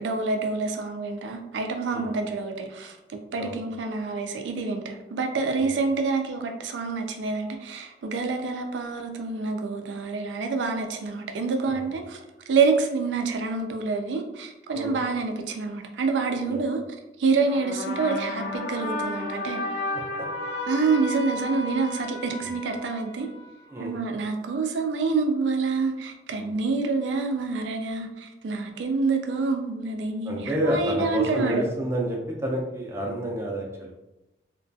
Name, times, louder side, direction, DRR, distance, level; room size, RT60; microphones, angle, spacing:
voice 1, 0.0-12.2 12.5-16.8 17.2-19.6 20.7-23.3 23.8-31.7, right 4 dB, 90° right, 5 dB, 0.4 m, -27 dB
sound 1, 17.4-23.8, left 2 dB, 85° left, 0.3 m, -33 dB
voice 2, 23.7-24.0 26.4-26.5 30.3-33.9, equal, 15° right, -1 dB, 0.4 m, -29 dB
2.3 x 2.2 x 2.6 m, 0.96 s
head